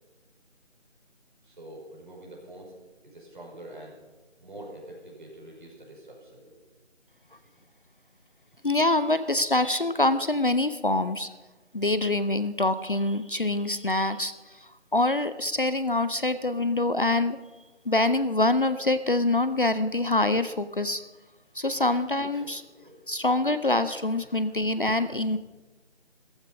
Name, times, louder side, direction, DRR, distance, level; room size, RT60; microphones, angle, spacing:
voice 1, 1.4-2.7 3.0-4.0 4.4-6.6 16.2-16.4 22.4-23.2, right 1 dB, 45° right, -2 dB, 5.5 m, -46 dB
voice 2, 8.6-11.3 11.7-17.4 17.9-21.0 21.5-22.6 23.1-25.4, left 2 dB, 45° left, 13 dB, 0.5 m, -25 dB
15.0 x 14.5 x 5.3 m, 1.2 s
figure-of-eight pair, 170°, 35 cm